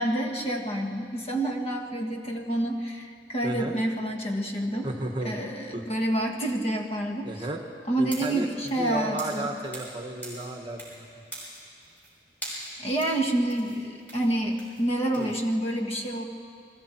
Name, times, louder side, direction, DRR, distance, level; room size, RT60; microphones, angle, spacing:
voice 1, 0.0-4.9 5.2-7.5 7.9-9.5 12.8-16.2, right 1 dB, 35° left, 2 dB, 1.6 m, -28 dB
voice 2, 3.4-3.8 4.8-5.3 5.7-5.8 7.2-7.6 8.0-8.5 8.8-11.0 15.2-15.3, right 1 dB, 25° right, 3 dB, 1.6 m, -33 dB
sound 1, 8.0-10.0 10.2-11.0 11.3-12.1 12.4-15.4, right 1 dB, 10° left, 6.3 m, -42 dB
29.5 x 21.0 x 4.6 m, 2.3 s
head